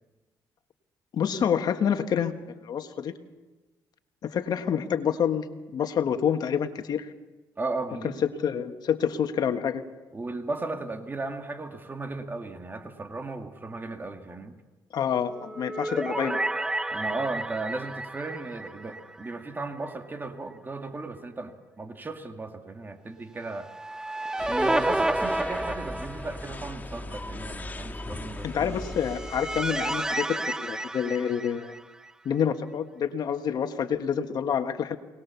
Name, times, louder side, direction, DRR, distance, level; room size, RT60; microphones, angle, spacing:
voice 1, 1.1-2.3 2.6-3.1 4.2-5.4 5.7-7.1 8.4-9.8 14.9-16.4 28.4-31.7 32.2-35.0, left 8 dB, 60° left, 7 dB, 1.6 m, -27 dB
voice 2, 7.6-8.2 10.1-14.6 16.9-23.7 24.5-28.8, right 3 dB, 25° right, 6 dB, 2.0 m, -35 dB
sound 1, 15.3-19.6 19.9-20.0 23.5-26.7 28.7-32.1, right 1 dB, 10° right, 0.7 m, -31 dB
sound 2, 24.4-30.1, left 2 dB, 20° left, 1.4 m, -39 dB
22.5 x 19.0 x 7.1 m, 1.2 s
cardioid pair, 90°, 8 cm